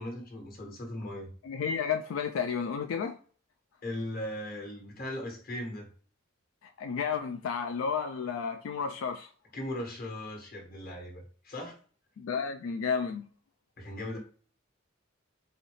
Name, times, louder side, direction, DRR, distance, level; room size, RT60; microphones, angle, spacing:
voice 1, 0.0-1.3 3.8-5.9 9.5-11.8 13.8-14.2, left 1 dB, 50° left, 1.3 m, -38 dB
voice 2, 1.4-3.2 6.6-9.3 12.2-13.3, left 6 dB, 85° left, 0.4 m, -32 dB
4.2 x 3.8 x 3.1 m
head